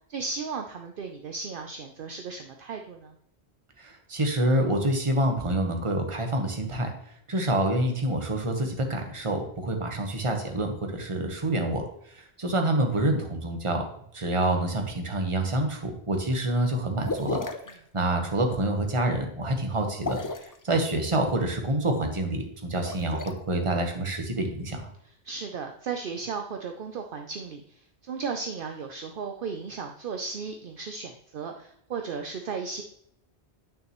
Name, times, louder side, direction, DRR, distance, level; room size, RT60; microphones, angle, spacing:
voice 1, 0.1-3.1 25.0-32.8, right 5 dB, 60° right, 4 dB, 0.8 m, -35 dB
voice 2, 3.8-6.9 7.3-13.8 14.1-17.4 17.7-20.2 20.6-24.9, right 1 dB, 30° right, 4 dB, 1.2 m, -27 dB
sound 1, 17.0-17.7 19.9-20.6 22.7-23.3, left 3 dB, 30° left, 0.4 m, -32 dB
9.1 x 6.3 x 3.0 m, 0.71 s
omnidirectional pair, 1.1 m